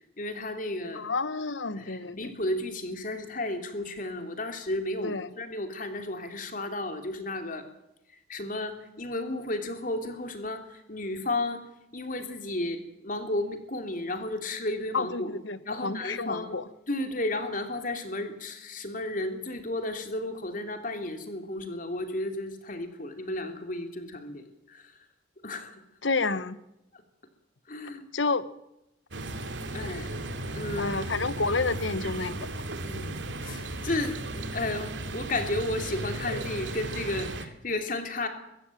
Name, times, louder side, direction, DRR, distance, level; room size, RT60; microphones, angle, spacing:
voice 1, 0.2-1.0 1.7-7.7 8.3-11.6 11.9-15.3 15.6-16.6 16.9-24.9 25.4-25.8 27.7-28.0 29.7-30.1 30.5-30.9 32.8-33.1 33.4-34.2 34.5-38.3, left 2 dB, 45° left, 7 dB, 3.0 m, -33 dB
voice 2, 0.9-2.3 5.0-5.3 14.9-16.6 26.0-26.6 28.1-28.5 30.8-32.6, left 3 dB, 80° left, 15 dB, 1.2 m, -30 dB
sound 1, 29.1-37.5, right 2 dB, 75° right, 2.4 m, -35 dB
22.0 x 15.0 x 9.0 m, 0.87 s
head